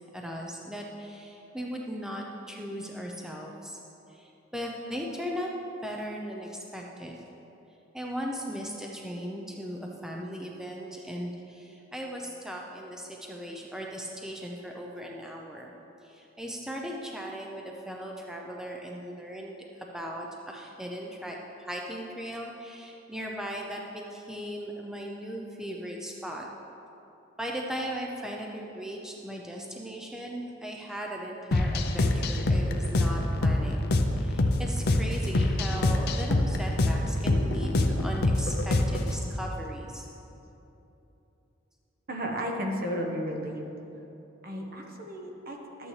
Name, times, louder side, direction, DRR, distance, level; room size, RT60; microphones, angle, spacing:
voice 1, 0.1-3.8 4.1-5.5 5.8-7.2 7.9-15.7 16.0-19.5 19.9-26.5 27.4-40.1, equal, 5° right, -1 dB, 0.5 m, -38 dB
sound 1, 31.5-39.2, left 2 dB, 55° left, 0.6 m, -25 dB
voice 2, 42.1-43.6 44.4-45.9, equal, 50° right, 1 dB, 1.1 m, -33 dB
12.5 x 8.6 x 3.2 m, 3.0 s
head